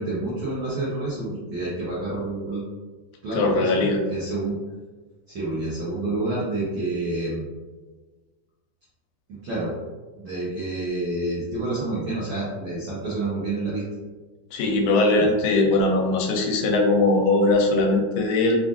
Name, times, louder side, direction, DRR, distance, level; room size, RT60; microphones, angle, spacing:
voice 1, 0.0-2.6 3.2-4.5 5.3-7.5 9.3-9.7 10.1-13.8 15.2-15.3, right 2 dB, 80° right, -9 dB, 1.1 m, -28 dB
voice 2, 3.4-4.0 14.5-18.6, left 2 dB, 80° left, 2 dB, 2.0 m, -20 dB
5.4 x 2.5 x 2.4 m, 1.3 s
omnidirectional pair, 3.6 m